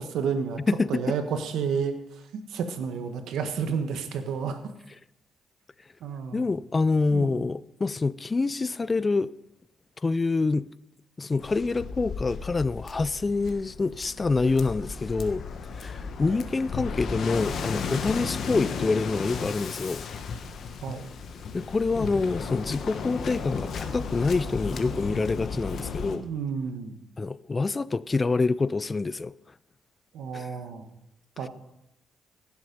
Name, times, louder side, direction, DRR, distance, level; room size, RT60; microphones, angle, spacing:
voice 1, 0.0-0.6 0.9-4.7 6.0-6.5 7.1-7.5 16.2-16.4 20.8-21.1 26.1-27.0 30.1-30.9 31.4-31.5, right 6 dB, 80° right, 1.4 m, -31 dB
voice 2, 0.7-1.2 6.3-9.3 10.0-10.7 11.2-15.4 15.8-20.0 21.5-26.2 27.2-29.3 30.3-30.5, left 3 dB, 25° left, 0.3 m, -26 dB
Waves surf, 11.4-26.2, left 5 dB, 60° left, 1.2 m, -34 dB
15.5 x 7.3 x 5.4 m
cardioid pair, 90°, 0 cm